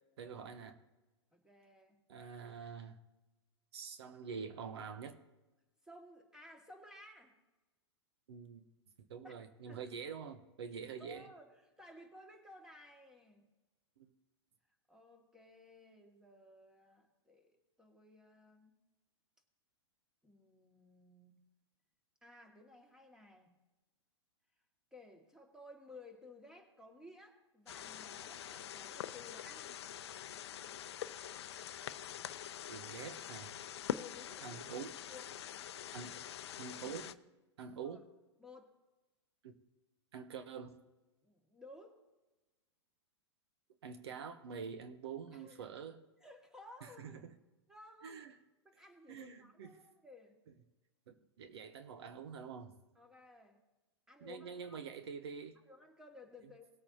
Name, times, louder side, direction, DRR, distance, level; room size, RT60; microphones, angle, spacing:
voice 1, 0.2-0.8 2.1-3.0 3.7-5.1 8.3-8.7 9.1-11.3 14.0-14.1 32.7-33.5 34.4-34.9 35.9-36.2 36.6-37.1 37.6-38.0 39.4-39.5 40.1-40.7 43.8-46.0 46.8-47.3 48.0-48.3 49.1-49.8 51.1-52.7 54.2-55.6, right 6 dB, 65° right, 0.9 m, -46 dB
voice 2, 1.3-2.0 5.8-7.3 9.2-9.4 9.7-9.9 11.0-13.4 14.9-18.8 20.2-21.4 22.2-23.5 24.9-29.8 33.9-34.6 35.1-35.4 35.9-36.1 37.8-38.0 38.4-38.7 41.2-42.0 45.3-45.7 46.2-47.2 47.7-48.2 48.6-50.4 53.0-53.6 54.1-54.9 55.6-56.7, left 2 dB, 5° right, 2.0 m, -57 dB
sound 1, 27.7-37.1, left 10 dB, 65° left, 0.6 m, -45 dB
19.5 x 8.5 x 2.8 m
hypercardioid pair, 110°, 15 cm